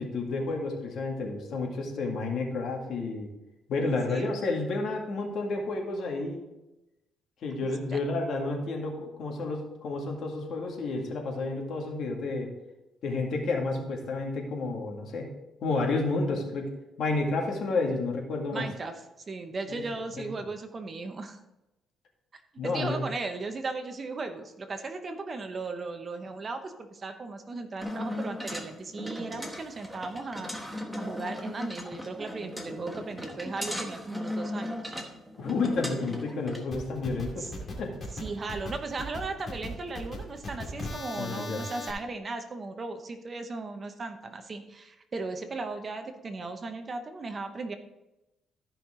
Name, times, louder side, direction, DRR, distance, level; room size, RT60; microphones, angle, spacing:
voice 1, 0.0-3.3 3.7-6.4 7.4-12.5 13.0-15.3 15.6-16.7 17.0-18.7 19.7-19.8 20.2-20.3 22.6-23.0 35.4-37.9 41.2-41.7, left 3 dB, 65° left, 1 dB, 2.1 m, -31 dB
voice 2, 3.8-4.3 7.9-8.0 18.5-21.4 22.6-34.9 37.4-37.5 38.1-47.8, right 3 dB, 35° right, 7 dB, 0.9 m, -37 dB
sound 1, 27.8-36.6, left 1 dB, ahead, 1.2 m, -37 dB
sound 2, 36.7-41.9, left 2 dB, 40° left, 2.3 m, -39 dB
13.5 x 5.7 x 3.7 m, 0.96 s
cardioid pair, 125°, 0 cm